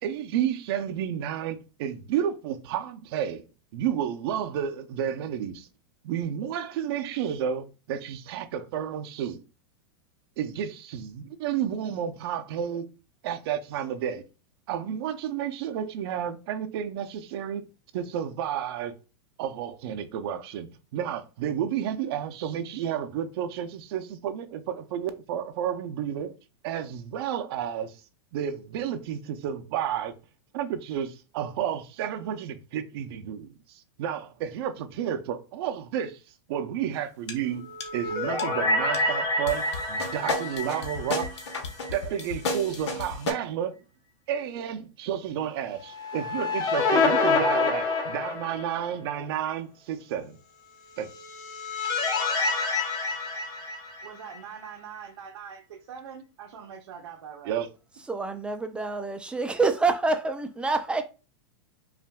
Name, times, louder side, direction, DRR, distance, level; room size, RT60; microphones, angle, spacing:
voice 1, 0.0-3.4 3.7-5.7 6.0-9.4 10.4-12.9 13.2-14.3 14.7-17.7 17.9-18.9 19.4-20.7 20.9-26.4 26.6-28.0 28.3-30.1 30.5-36.2 36.5-41.4 41.9-43.8 44.3-50.4 51.0-51.1 57.5-57.7, right 9 dB, 60° right, 0.6 m, -31 dB
sound 1, 37.3-37.4 37.8-38.1 38.4-38.5 38.9-39.0 39.5-43.3, left 3 dB, 80° left, 1.2 m, -32 dB
sound 2, 37.6-41.9 42.2-42.3 45.8-48.9 51.0-54.4, left 3 dB, 25° left, 0.9 m, -28 dB
voice 2, 54.0-57.6, right 7 dB, 85° right, 1.0 m, -43 dB
voice 3, 58.1-61.0, right 3 dB, 5° right, 0.5 m, -27 dB
5.6 x 2.6 x 2.3 m
hypercardioid pair, 135°, 15 cm